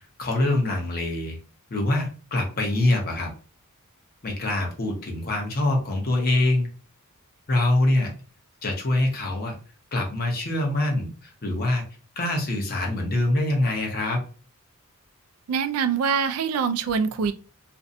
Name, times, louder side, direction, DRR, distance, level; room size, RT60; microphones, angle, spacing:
voice 1, 0.2-1.4 1.7-3.3 4.2-6.7 7.5-8.1 8.6-9.6 9.9-11.8 12.2-14.2, left 1 dB, 45° left, 1 dB, 0.7 m, -24 dB
voice 2, 15.5-17.3, right 6 dB, 75° right, 13 dB, 0.3 m, -24 dB
2.5 x 2.1 x 2.5 m, 0.36 s
head